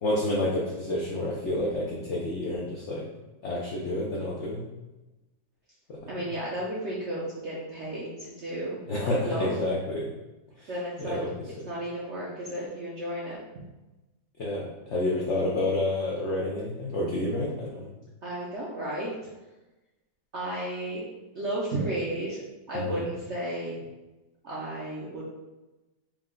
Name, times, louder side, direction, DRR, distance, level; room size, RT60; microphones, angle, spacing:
voice 1, 0.0-3.0 3.4-4.7 5.9-6.2 8.9-10.1 10.6-10.7 11.0-11.7 14.4-17.9 22.7-23.0, left 1 dB, 80° left, -3 dB, 0.6 m, -29 dB
voice 2, 6.1-9.5 10.7-11.2 11.7-13.4 18.2-19.1 20.3-21.0 21.3-22.4 22.7-23.8 24.4-25.2, right 1 dB, 65° right, -6 dB, 0.7 m, -33 dB
4.5 x 2.1 x 3.7 m, 1.1 s
omnidirectional pair, 1.9 m